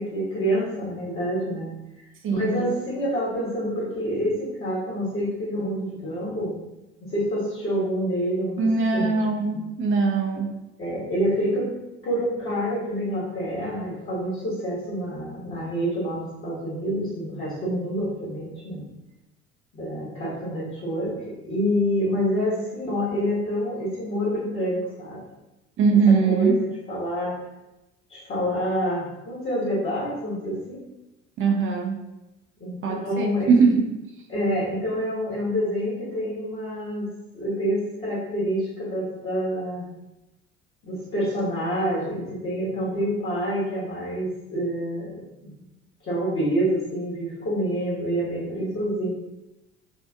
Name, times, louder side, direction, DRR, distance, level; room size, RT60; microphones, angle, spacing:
voice 1, 0.0-1.7 2.3-6.6 7.1-8.7 8.9-9.2 10.8-11.7 12.0-18.9 19.7-25.2 26.1-27.4 28.1-30.8 32.6-33.5 34.3-37.1 37.3-39.9 40.8-45.6 46.0-49.1, equal, 35° left, -6 dB, 1.4 m, -27 dB
voice 2, 2.2-2.7 8.6-10.5 25.8-26.5 31.4-32.0 32.8-33.9, right 5 dB, 35° right, 2 dB, 0.6 m, -21 dB
4.4 x 2.5 x 2.3 m, 0.98 s
figure-of-eight pair, 60°, 36 cm